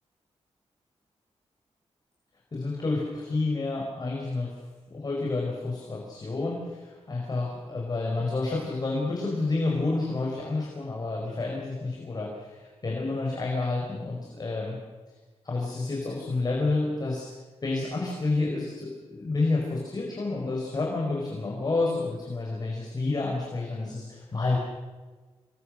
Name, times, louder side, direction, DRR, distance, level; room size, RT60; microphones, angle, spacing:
voice 1, 2.5-4.5 4.9-14.8 15.4-24.6, left 3 dB, 35° left, -2 dB, 4.9 m, -29 dB
27.0 x 22.0 x 6.6 m, 1.3 s
wide cardioid pair, 120°, 11 cm